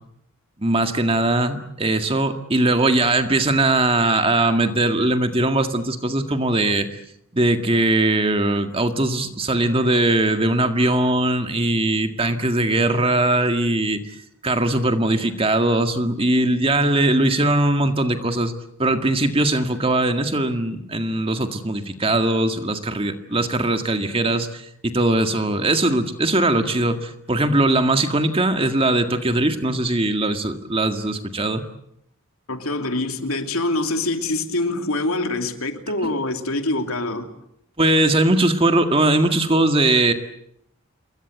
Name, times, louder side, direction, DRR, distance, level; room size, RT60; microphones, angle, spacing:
voice 1, 0.6-6.9 7.3-14.0 14.4-18.5 18.8-31.6 36.0-36.1 37.8-40.1, right 2 dB, 25° right, 1.9 m, -20 dB
voice 2, 32.5-37.3, left 2 dB, 80° left, 3.0 m, -25 dB
28.0 x 22.0 x 8.2 m
head